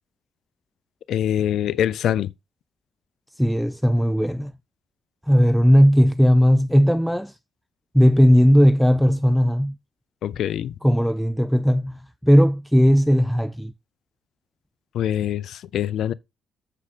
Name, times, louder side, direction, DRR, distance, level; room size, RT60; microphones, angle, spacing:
voice 1, 1.1-2.3 10.2-10.8 14.9-16.1, left 10 dB, 70° left, 0.5 m, -24 dB
voice 2, 3.4-4.5 5.3-7.4 7.9-9.8 10.8-13.7, equal, ahead, 0.4 m, -17 dB
7.5 x 4.9 x 4.1 m
cardioid pair, 90°, 0 cm